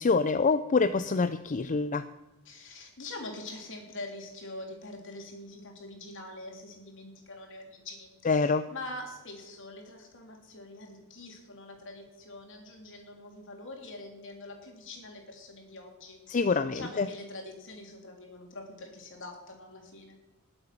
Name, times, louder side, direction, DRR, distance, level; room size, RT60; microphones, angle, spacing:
voice 1, 0.0-2.1 8.2-8.6 16.3-17.1, left 4 dB, 35° left, 12 dB, 0.5 m, -26 dB
voice 2, 2.4-20.2, left 2 dB, 60° left, 2 dB, 3.4 m, -44 dB
20.0 x 7.9 x 6.0 m, 1.1 s
head